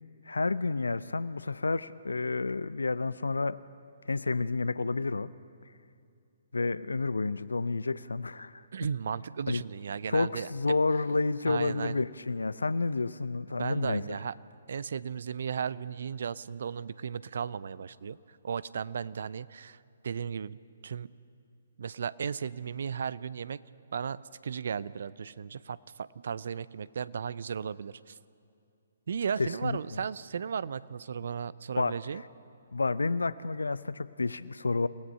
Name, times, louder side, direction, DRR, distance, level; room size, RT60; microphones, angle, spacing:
voice 1, 0.3-3.6 4.1-5.3 6.5-8.7 9.5-9.6 10.1-14.0 29.4-30.0 31.8-32.0 32.7-34.9, left 3 dB, 75° left, 17 dB, 0.5 m, -30 dB
voice 2, 8.7-10.8 11.4-12.0 13.5-14.3 14.7-20.6 20.8-21.1 21.8-23.6 23.9-28.2 29.1-32.2, right 7 dB, 60° right, 19 dB, 0.5 m, -35 dB
29.0 x 17.5 x 5.6 m, 2.4 s
figure-of-eight pair, 130°, 0 cm